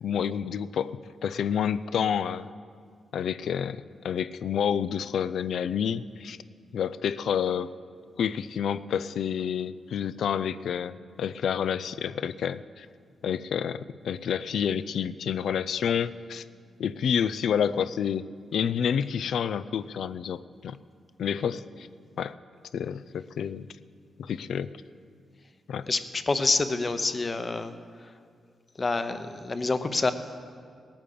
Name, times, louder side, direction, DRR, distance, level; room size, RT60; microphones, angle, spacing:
voice 1, 0.0-2.5 3.1-6.4 6.7-7.7 8.2-12.9 13.2-16.4 16.8-20.8 21.2-21.9 22.2-22.4 22.7-23.7 24.2-24.7 25.7-25.9, left 8 dB, 75° left, 16 dB, 0.4 m, -29 dB
voice 2, 25.9-27.7 28.0-28.1 28.8-30.1, left 3 dB, 30° left, 10 dB, 0.8 m, -27 dB
18.5 x 8.9 x 6.7 m, 2.1 s
cardioid pair, 115°, 0 cm